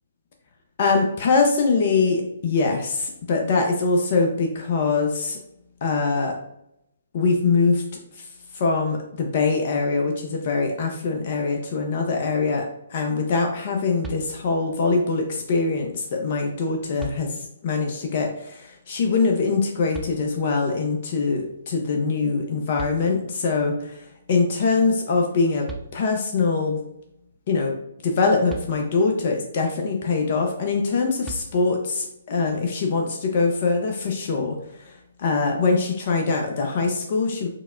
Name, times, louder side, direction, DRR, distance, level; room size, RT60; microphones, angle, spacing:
voice 1, 0.8-5.4 5.8-6.4 7.1-7.8 8.2-8.3 8.5-12.6 12.9-25.7 25.9-26.8 27.5-27.7 28.0-34.9 35.2-37.5, left 4 dB, 45° left, 2 dB, 0.6 m, -23 dB
sound 1, 14.0-14.8 16.3-16.4 17.0-17.7 19.9-20.7 22.4-22.5 22.8-23.6 25.3-25.4 25.7-26.4 28.5-29.3 31.2-32.0, right 3 dB, 10° right, 0.4 m, -40 dB
4.6 x 2.1 x 2.4 m, 0.78 s
figure-of-eight pair, 135°, 0 cm